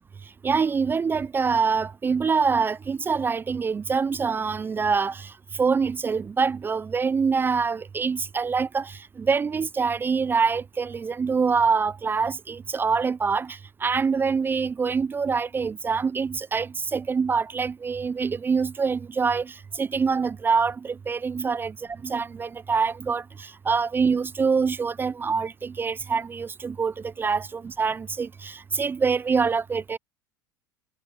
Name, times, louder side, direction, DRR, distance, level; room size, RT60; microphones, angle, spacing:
voice 1, 0.4-30.0, right 5 dB, 20° right, 0.4 m, -25 dB
hypercardioid pair, 80°, 10 cm